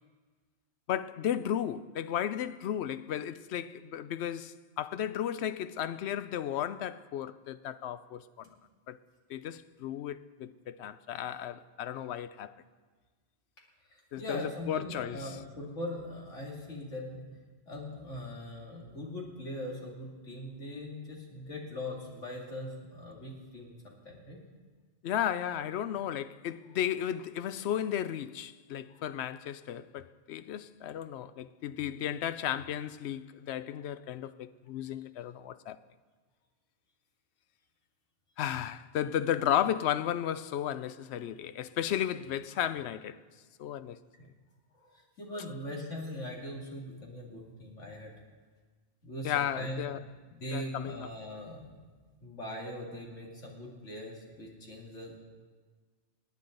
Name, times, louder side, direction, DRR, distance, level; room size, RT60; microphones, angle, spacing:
voice 1, 0.9-8.2 8.9-9.0 9.3-12.5 14.1-15.4 25.0-35.8 38.4-43.2 43.6-44.0 49.2-50.0 50.5-51.1, left 10 dB, 70° left, 0.8 m, -34 dB
voice 2, 13.9-17.3 17.7-24.4 28.9-29.0 35.5-35.6 44.8-48.1 49.0-50.0 50.3-51.8 52.2-55.2, left 1 dB, 85° left, 2.9 m, -41 dB
27.5 x 9.3 x 3.9 m
omnidirectional pair, 1.2 m